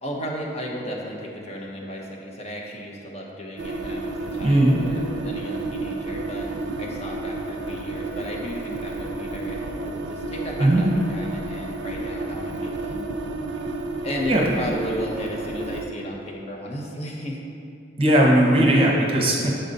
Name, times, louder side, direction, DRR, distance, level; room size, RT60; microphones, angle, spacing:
voice 1, 0.0-13.1 14.0-17.4, equal, 35° left, -2 dB, 0.9 m, -34 dB
sound 1, 3.6-15.8, right 2 dB, 65° right, 0.5 m, -31 dB
voice 2, 4.4-4.8 10.6-10.9 14.3-14.4 18.0-19.5, right 1 dB, 30° right, -2 dB, 1.0 m, -18 dB
6.7 x 5.0 x 4.0 m, 2.6 s
head